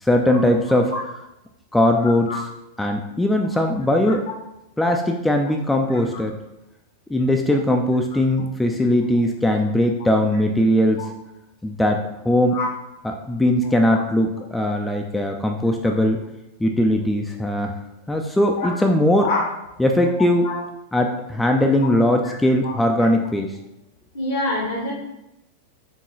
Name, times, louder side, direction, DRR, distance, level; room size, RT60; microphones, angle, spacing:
voice 1, 0.0-0.9 1.7-2.3 2.8-4.2 4.8-6.3 7.1-11.1 11.6-12.6 13.0-16.2 16.6-17.7 18.1-19.3 19.8-20.5 20.9-23.6, left 1 dB, 5° left, 3 dB, 0.3 m, -20 dB
voice 2, 24.1-24.9, left 2 dB, 65° left, -3 dB, 0.9 m, -25 dB
4.4 x 2.9 x 3.1 m, 0.89 s
figure-of-eight pair, 90°, 0 cm